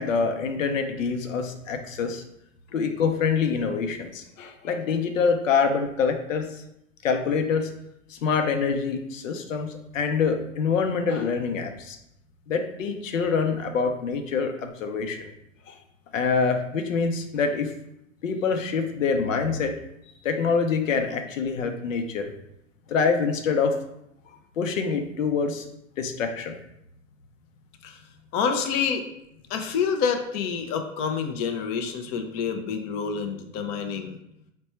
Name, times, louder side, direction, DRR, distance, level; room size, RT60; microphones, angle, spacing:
voice 1, 0.0-2.2 2.7-6.5 7.0-7.7 8.1-12.0 12.5-15.3 15.7-15.8 16.1-17.7 18.2-19.8 20.1-22.3 22.9-23.8 24.6-25.7 26.0-26.6, left 5 dB, 80° left, 6 dB, 0.7 m, -25 dB
voice 2, 28.3-29.0 29.5-34.2, left 6 dB, 35° left, 5 dB, 0.5 m, -27 dB
4.2 x 2.2 x 4.3 m, 0.81 s
hypercardioid pair, 115°, 39 cm